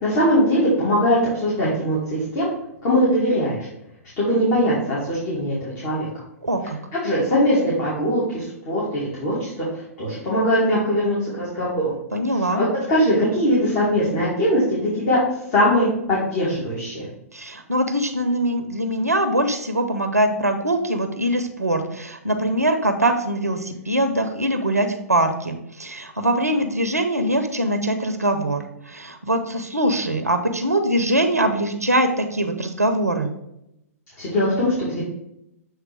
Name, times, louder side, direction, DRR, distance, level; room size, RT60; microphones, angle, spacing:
voice 1, 0.0-2.5 2.8-3.7 4.2-6.1 6.9-11.9 12.3-15.2 15.5-17.1 34.2-35.0, equal, 35° left, -7 dB, 2.3 m, -21 dB
voice 2, 6.4-6.8 12.1-12.6 17.3-33.3, right 1 dB, 85° right, 6 dB, 0.8 m, -22 dB
7.5 x 3.3 x 4.7 m, 0.83 s
figure-of-eight pair, 110°, 8 cm